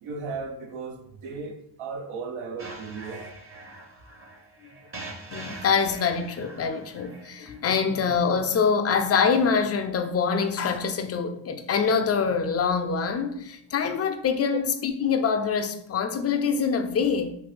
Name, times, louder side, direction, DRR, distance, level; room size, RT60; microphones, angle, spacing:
voice 1, 0.0-3.3, right 4 dB, 80° right, 0.7 m, -36 dB
sound 1, 2.6-7.6, right 2 dB, 25° right, 0.7 m, -43 dB
voice 2, 5.3-17.3, left 6 dB, 35° left, 0.4 m, -25 dB
2.7 x 2.5 x 3.1 m
cardioid pair, 65°, 48 cm